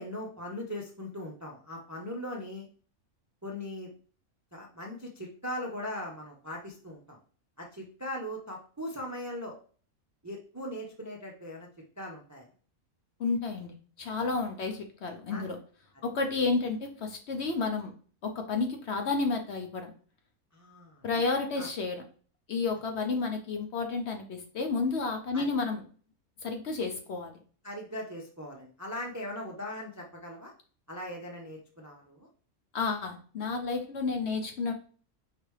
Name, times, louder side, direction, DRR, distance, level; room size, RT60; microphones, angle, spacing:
voice 1, 0.0-2.7 3.4-3.9 4.5-7.2 7.6-9.6 10.2-11.7 12.0-12.5 14.2-14.4 15.3-15.5 20.5-21.1 21.6-21.7 25.3-25.5 27.6-30.5 30.9-32.3, left 1 dB, 20° right, 0 dB, 0.4 m, -39 dB
voice 2, 13.2-15.6 16.0-17.9 18.2-19.9 21.0-22.0 22.5-25.8 26.4-27.3 32.7-34.7, left 4 dB, 60° left, 4 dB, 0.8 m, -31 dB
4.9 x 3.3 x 3.2 m, 0.42 s
omnidirectional pair, 1.5 m